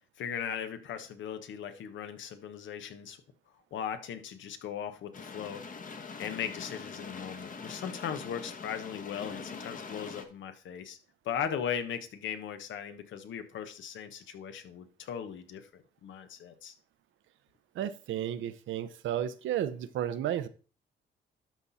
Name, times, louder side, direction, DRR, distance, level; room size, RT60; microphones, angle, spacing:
voice 1, 0.2-3.2 3.7-5.6 6.2-11.0 11.2-16.7, left 8 dB, 75° left, 9 dB, 1.2 m, -38 dB
sound 1, 5.1-10.2, left 5 dB, 40° left, 1.2 m, -43 dB
voice 2, 17.7-20.5, right 10 dB, 75° right, 13 dB, 0.7 m, -33 dB
12.0 x 4.2 x 4.1 m, 0.38 s
cardioid pair, 90°, 20 cm